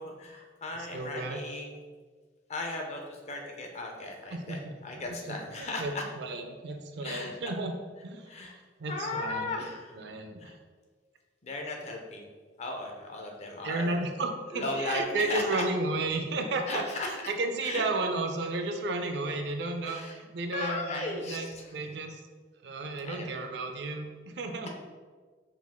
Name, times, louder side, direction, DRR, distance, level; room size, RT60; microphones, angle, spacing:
voice 1, 0.0-1.8 2.5-6.0 7.0-7.5 8.3-8.6 8.9-10.0 10.4-10.5 11.4-12.3 12.6-14.0 14.5-15.4 16.7-17.2 17.6-17.8 19.8-20.2 20.5-21.7 23.0-23.4, left 2 dB, 35° left, 2 dB, 0.5 m, -36 dB
voice 2, 0.8-1.4 4.3-4.8 5.2-7.7 8.0-8.4 8.8-9.7 9.9-10.6 13.6-22.2 22.6-24.7, right 2 dB, 65° right, 5 dB, 0.4 m, -33 dB
4.9 x 3.5 x 2.3 m, 1.5 s
head